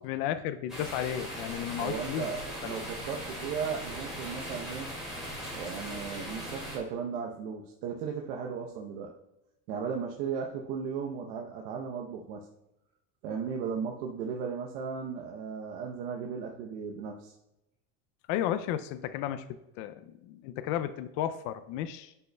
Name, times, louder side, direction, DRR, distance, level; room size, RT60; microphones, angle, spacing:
voice 1, 0.0-2.3 2.6-2.8 18.3-19.4 19.8-22.1, left 11 dB, 55° left, 10 dB, 0.4 m, -33 dB
sound 1, 0.7-6.8, equal, ahead, 2.4 m, -39 dB
voice 2, 1.8-4.9 5.5-9.1 9.7-12.4 13.2-17.3, right 6 dB, 65° right, 0 dB, 0.9 m, -36 dB
10.5 x 5.4 x 2.2 m, 0.88 s
cardioid pair, 165°, 38 cm